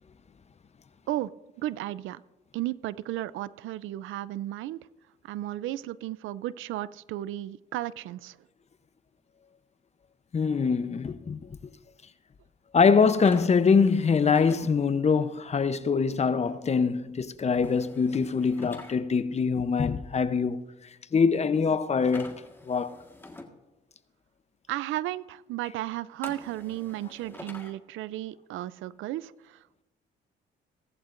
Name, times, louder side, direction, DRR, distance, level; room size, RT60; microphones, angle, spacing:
voice 1, 1.6-2.2 2.5-4.8 5.2-8.4 24.7-29.8, right 14 dB, 80° right, 0.5 m, -34 dB
voice 2, 10.3-11.4 12.7-20.6 21.1-22.4 22.7-23.0, left 5 dB, 35° left, 0.7 m, -24 dB
sound 1, 13.2-14.7 17.6-18.9 22.1-23.5 26.2-27.7, left 2 dB, 10° left, 1.6 m, -46 dB
17.0 x 14.5 x 2.6 m
cardioid pair, 80°, 20 cm